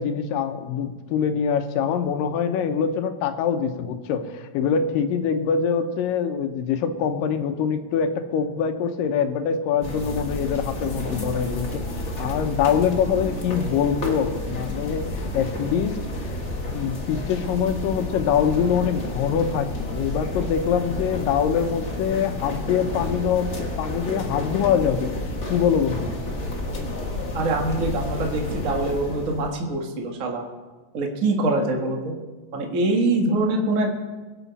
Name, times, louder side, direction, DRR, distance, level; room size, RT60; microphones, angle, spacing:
voice 1, 0.0-15.9 16.3-16.4 16.7-25.1 25.5-26.1, left 7 dB, 80° left, 8 dB, 2.5 m, -24 dB
sound 1, 9.8-29.6, left 1 dB, 60° left, 0.7 m, -30 dB
voice 2, 27.3-30.4 30.9-32.1 32.5-33.9, right 2 dB, 40° right, 1 dB, 1.1 m, -24 dB
22.5 x 8.3 x 4.1 m, 1.3 s
omnidirectional pair, 4.0 m